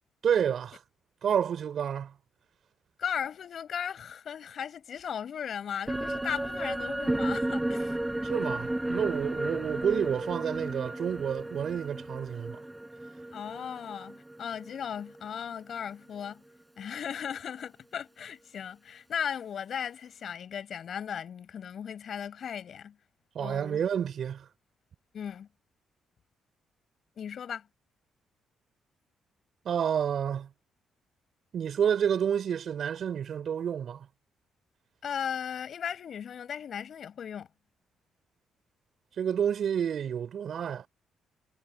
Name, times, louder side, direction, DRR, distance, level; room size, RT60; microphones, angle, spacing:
voice 1, 0.2-0.8 1.2-2.1 8.2-12.6 23.3-24.5 29.6-30.5 31.5-34.1 39.2-40.9, right 8 dB, 65° right, 5.0 m, -29 dB
voice 2, 3.0-8.0 13.3-16.4 16.8-23.0 23.4-23.8 25.1-25.5 27.2-27.7 35.0-37.5, left 8 dB, 60° left, 5.8 m, -37 dB
sound 1, 5.9-15.4 15.7-15.8, right 1 dB, 10° right, 7.7 m, -33 dB
supercardioid pair, 60°, 0 cm